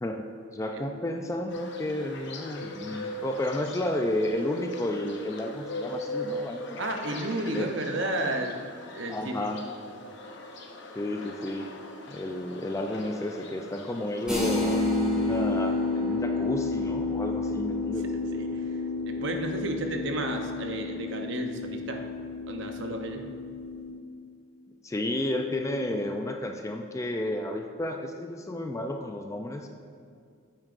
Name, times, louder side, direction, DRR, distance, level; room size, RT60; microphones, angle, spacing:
voice 1, 0.0-6.9 7.5-7.7 9.1-9.6 10.9-11.7 12.1-18.1 24.8-29.7, left 1 dB, 15° left, 4 dB, 0.3 m, -32 dB
sound 1, 1.5-14.8, left 2 dB, 55° left, 0.7 m, -40 dB
voice 2, 6.8-8.6 8.9-9.5 18.3-18.8 19.1-22.0 22.5-23.3, right 1 dB, 55° right, 4 dB, 0.7 m, -32 dB
sound 2, 14.3-23.9, left 3 dB, 5° right, 1.9 m, -30 dB
9.1 x 8.7 x 2.5 m, 2.2 s
head